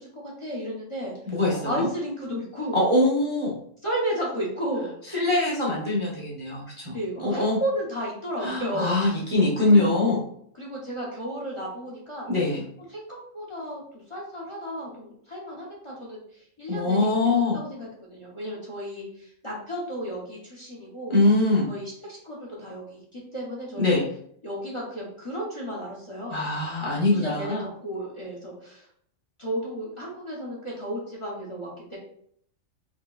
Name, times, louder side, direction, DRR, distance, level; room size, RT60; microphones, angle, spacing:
voice 1, 0.0-1.1 1.6-2.8 3.8-4.9 6.9-9.0 9.7-10.2 10.6-12.3 12.9-13.8 14.1-16.2 16.6-17.1 17.5-21.2 21.7-24.0 24.4-26.4 27.1-27.5 27.8-28.9 29.4-32.0, equal, 25° left, -4 dB, 0.8 m, -33 dB
voice 2, 1.3-1.9 2.7-3.5 5.1-7.6 8.4-10.2 12.3-12.6 16.7-17.6 21.1-21.7 23.7-24.1 26.3-27.6, left 2 dB, 30° right, -5 dB, 0.7 m, -23 dB
4.5 x 2.9 x 2.4 m, 0.66 s
omnidirectional pair, 1.4 m